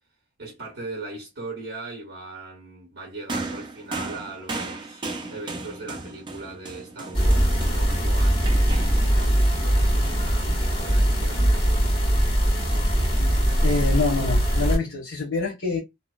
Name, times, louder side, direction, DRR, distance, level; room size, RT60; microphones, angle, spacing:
voice 1, 0.4-5.0 5.3-11.9, right 2 dB, 60° right, 0.9 m, -39 dB
sound 1, 3.3-10.8 11.8-11.9, right 3 dB, 25° right, 0.4 m, -36 dB
sound 2, 7.1-14.8, equal, 30° left, 1.6 m, -21 dB
voice 2, 13.6-15.8, left 3 dB, 70° left, 0.9 m, -26 dB
2.8 x 2.0 x 2.3 m
head